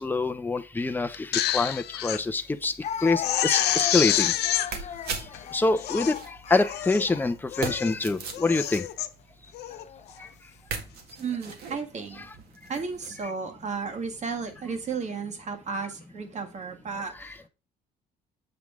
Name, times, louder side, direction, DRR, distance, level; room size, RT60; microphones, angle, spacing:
voice 1, 0.0-2.7 3.0-4.3 5.5-8.9 10.2-10.3, left 3 dB, 10° left, 0.7 m, -26 dB
Crying sobbing, 1.1-2.2 2.6-2.7 3.1-4.7 5.3-5.4 5.8-6.2 6.7-7.1 7.5-7.9 8.3-9.1 9.5-9.8, left 12 dB, 75° left, 0.8 m, -27 dB
Speech, 1.7-1.8 2.8-7.7 8.5-8.7 9.7-10.3, left 9 dB, 45° left, 0.5 m, -37 dB
sound 1, 2.9-13.3 13.6-14.9, right 5 dB, 70° right, 1.8 m, -41 dB
voice 2, 11.2-12.3 12.7-17.5, right 5 dB, 45° right, 1.8 m, -34 dB
7.8 x 5.8 x 3.7 m
cardioid pair, 110°, 17 cm